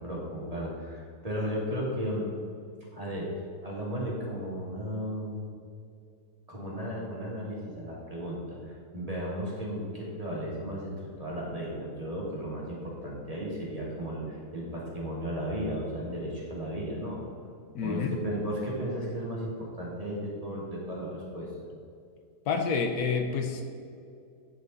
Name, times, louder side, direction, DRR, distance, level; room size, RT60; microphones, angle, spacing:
voice 1, 0.0-2.3 2.9-3.3 3.6-5.4 6.5-17.2 17.8-21.5, equal, 25° right, -5 dB, 1.8 m, -35 dB
voice 2, 17.7-18.2 22.5-23.6, left 5 dB, 80° left, 5 dB, 1.3 m, -28 dB
8.7 x 6.6 x 4.0 m, 2.4 s
omnidirectional pair, 1.6 m